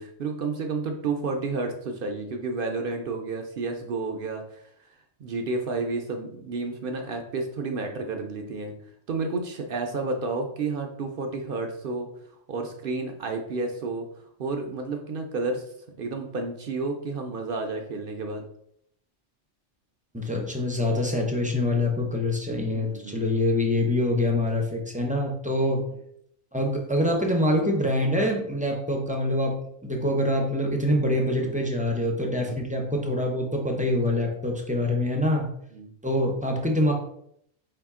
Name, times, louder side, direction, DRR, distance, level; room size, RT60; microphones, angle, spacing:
voice 1, 0.0-4.7 5.2-8.7 9.1-12.1 12.5-14.1 14.4-15.6 16.0-18.4 22.7-23.4 25.7-26.0 31.3-31.6 32.4-32.6 35.7-35.9, right 3 dB, 60° right, 4 dB, 0.6 m, -31 dB
voice 2, 20.1-25.8 26.5-29.5 29.8-35.4 36.0-36.9, left 1 dB, 10° right, 0 dB, 0.3 m, -25 dB
4.7 x 2.8 x 3.5 m, 0.71 s
omnidirectional pair, 1.3 m